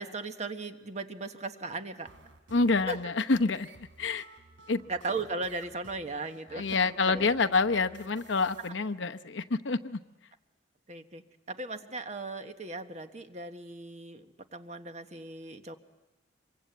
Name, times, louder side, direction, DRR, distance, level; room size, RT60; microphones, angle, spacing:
voice 1, 0.0-2.1 2.9-3.0 4.9-6.7 7.0-7.3 10.9-15.8, right 3 dB, 35° right, 7 dB, 1.3 m, -37 dB
sound 1, 2.1-8.7, right 3 dB, 90° right, 3.4 m, -55 dB
voice 2, 2.5-3.7 4.0-4.3 4.7-4.8 6.5-10.0, left 3 dB, 80° left, 7 dB, 0.9 m, -27 dB
26.5 x 23.5 x 8.2 m, 1.1 s
head